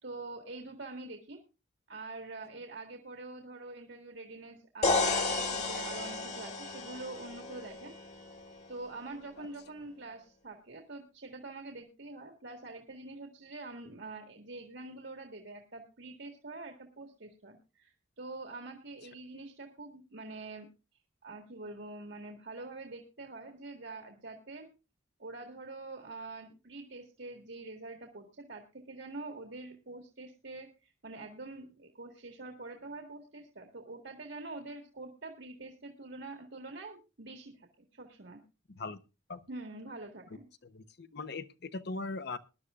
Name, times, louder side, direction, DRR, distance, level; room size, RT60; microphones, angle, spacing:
voice 1, 0.0-1.4 1.9-7.9 8.7-20.7 21.2-24.7 25.2-37.7 37.9-38.4 39.5-40.4, right 3 dB, 75° right, 3 dB, 1.9 m, -45 dB
sound 1, 4.8-8.7, left 3 dB, 40° left, 1.7 m, -33 dB
voice 2, 38.7-39.0 39.3-39.4 40.6-42.4, left 3 dB, 65° left, 11 dB, 0.9 m, -40 dB
21.5 x 11.5 x 2.4 m, 0.30 s
head